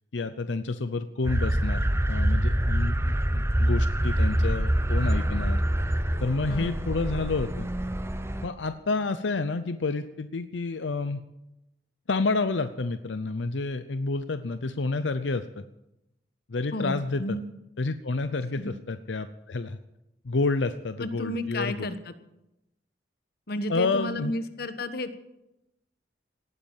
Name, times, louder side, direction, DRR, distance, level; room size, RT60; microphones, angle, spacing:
voice 1, 0.1-5.6 6.2-7.7 8.4-11.2 12.1-15.6 16.5-17.4 17.8-19.8 20.2-21.9 23.7-24.3, left 3 dB, 85° left, 11 dB, 0.7 m, -29 dB
sound 1, 1.2-8.5, right 1 dB, 15° right, 0.8 m, -25 dB
voice 2, 6.5-6.8 16.7-17.4 18.5-18.7 21.0-22.0 23.5-25.1, left 1 dB, 55° left, 10 dB, 1.2 m, -32 dB
18.0 x 9.7 x 7.4 m, 0.90 s
head